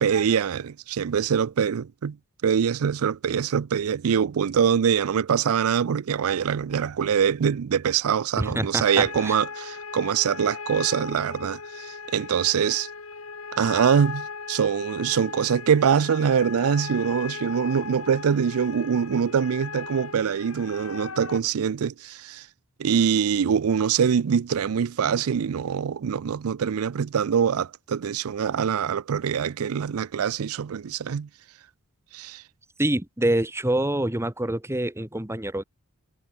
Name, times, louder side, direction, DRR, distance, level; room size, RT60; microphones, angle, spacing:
voice 1, 0.0-2.2 2.4-12.9 13.5-22.5 22.8-31.3 32.1-32.4, right 7 dB, 85° right, 0.4 m, -24 dB
voice 2, 8.4-9.4 32.8-35.6, right 1 dB, 10° right, 1.7 m, -26 dB
sound 1, 8.8-21.4, left 5 dB, 75° left, 1.7 m, -38 dB
head